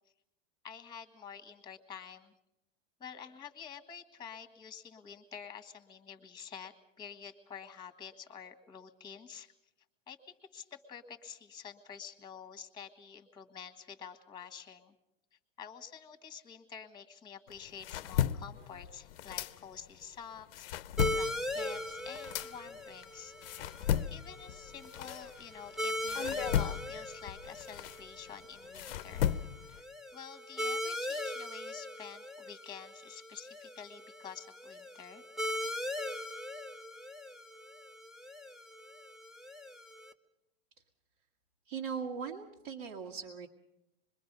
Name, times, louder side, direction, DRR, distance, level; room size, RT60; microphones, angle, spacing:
voice 1, 0.6-2.4 3.0-9.5 10.1-14.9 15.6-20.7 21.1-23.3 24.1-29.3 29.7-29.8 30.1-35.2, left 7 dB, 15° left, 8 dB, 1.6 m, -49 dB
sound 1, 17.5-20.0 20.4-25.7 26.1-29.8, left 10 dB, 70° left, 0.8 m, -35 dB
sound 2, 21.0-40.1, left 1 dB, ahead, 0.8 m, -40 dB
voice 2, 41.7-43.5, right 6 dB, 60° right, -2 dB, 2.0 m, -39 dB
25.5 x 22.0 x 5.4 m, 0.88 s
supercardioid pair, 135°, 30 cm